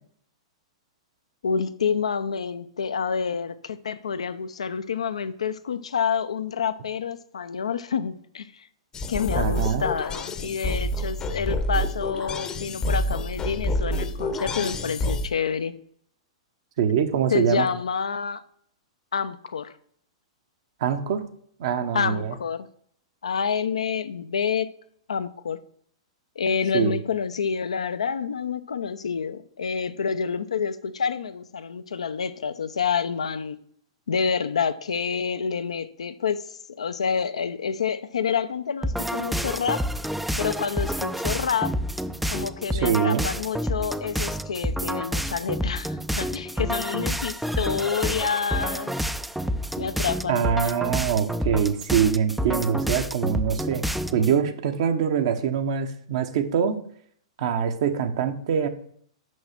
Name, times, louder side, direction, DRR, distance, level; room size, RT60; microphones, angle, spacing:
voice 1, 1.4-8.7 9.1-15.7 17.3-18.4 19.1-19.7 21.9-22.7 23.2-24.7 25.1-25.6 26.4-33.6 34.1-39.8 40.4-41.8 42.3-49.0 49.8-50.6, left 6 dB, 80° left, 0.6 m, -28 dB
sound 1, 8.9-15.3, left 1 dB, 20° left, 0.8 m, -28 dB
voice 2, 9.4-9.9 16.8-17.7 20.8-21.2 21.6-22.3 26.7-27.0 42.7-43.2 50.3-53.8 54.1-56.8 57.4-58.7, right 8 dB, 60° right, 1.0 m, -24 dB
sound 2, 38.8-54.4, equal, ahead, 0.4 m, -29 dB
6.3 x 5.5 x 6.0 m
hypercardioid pair, 115°, 3 cm